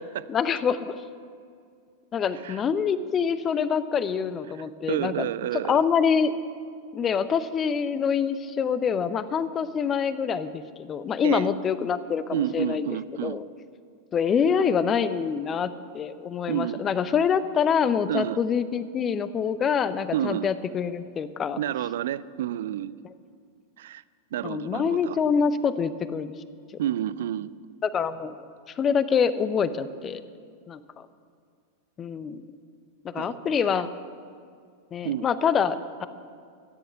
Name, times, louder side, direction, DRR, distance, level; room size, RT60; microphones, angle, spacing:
voice 1, 0.3-1.0 2.1-6.3 6.9-13.4 14.1-21.6 24.4-26.3 27.8-28.4 28.8-30.2 30.7-30.8 32.0-32.4 33.0-33.9 34.9-36.1, left 6 dB, 25° left, 14 dB, 0.6 m, -26 dB
voice 2, 4.9-5.8 11.2-11.5 12.3-13.4 16.5-16.8 18.1-18.4 20.1-20.5 21.6-22.9 23.8-24.0 24.3-25.2 26.8-27.5 33.2-33.7 35.0-35.3, right 12 dB, 60° right, 18 dB, 0.4 m, -29 dB
13.5 x 10.0 x 7.5 m, 2.2 s
figure-of-eight pair, 90°, 0 cm